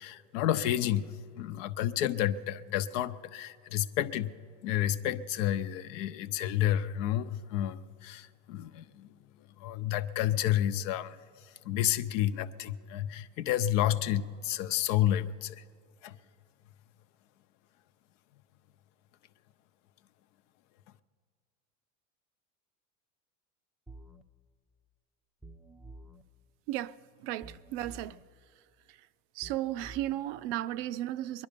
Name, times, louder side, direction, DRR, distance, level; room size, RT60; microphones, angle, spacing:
voice 1, 0.0-4.3 4.6-9.1 9.6-15.6 16.0-16.1, left 12 dB, 80° left, 0.7 m, -30 dB
sound 1, 23.9-24.2 25.4-26.2 27.4-28.2 29.4-30.2, right 2 dB, ahead, 0.4 m, -49 dB
voice 2, 26.7-28.2 28.9-29.1 29.3-31.5, right 14 dB, 75° right, 0.5 m, -35 dB
21.5 x 11.0 x 5.1 m
supercardioid pair, 115°, 36 cm